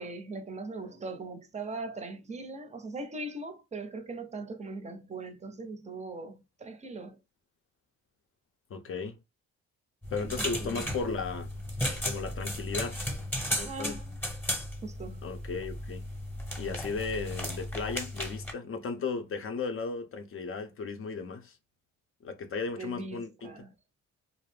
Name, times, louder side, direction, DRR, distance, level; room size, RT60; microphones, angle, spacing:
voice 1, 0.0-7.2 10.2-10.3 10.6-10.9 13.5-14.1 14.8-15.3 22.7-23.7, right 3 dB, 25° right, 0.6 m, -40 dB
voice 2, 8.7-9.2 10.1-11.5 12.0-13.0 13.6-14.0 15.2-16.0 16.6-21.6 22.2-23.6, left 4 dB, 45° left, 0.6 m, -35 dB
sound 1, 10.0-18.5, left 1 dB, 5° left, 0.9 m, -35 dB
2.4 x 2.0 x 3.2 m
cardioid pair, 90°, 30 cm